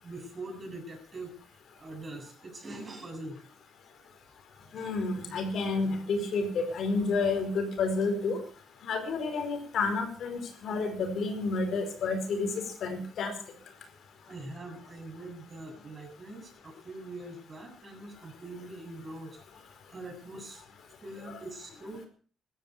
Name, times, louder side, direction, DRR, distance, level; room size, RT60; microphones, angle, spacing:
voice 1, 0.0-1.4 1.8-3.5 4.0-4.1 4.6-4.9 14.3-19.4 19.9-20.6 21.0-22.1, right 2 dB, 35° right, 4 dB, 7.7 m, -43 dB
voice 2, 4.7-8.4 8.8-13.3, left 3 dB, 65° left, 6 dB, 4.8 m, -30 dB
16.0 x 13.0 x 6.6 m, 0.42 s
cardioid pair, 90°, 0 cm